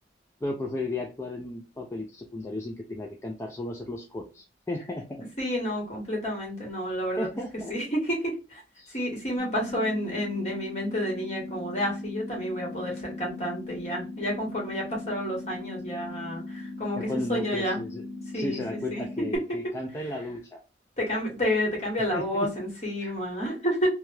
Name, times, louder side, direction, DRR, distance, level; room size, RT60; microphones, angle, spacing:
voice 1, 0.4-5.2 7.2-7.7 8.8-8.9 17.0-18.0 18.3-20.6 22.1-22.5 23.0-23.1, left 2 dB, 15° left, 1 dB, 0.3 m, -34 dB
voice 2, 5.4-7.3 7.7-8.6 8.9-17.8 18.3-18.6 18.9-19.0 21.0-23.9, equal, 40° left, -2 dB, 1.6 m, -30 dB
sound 1, 9.4-19.4, left 2 dB, ahead, 1.1 m, -39 dB
3.2 x 2.2 x 2.7 m, 0.31 s
head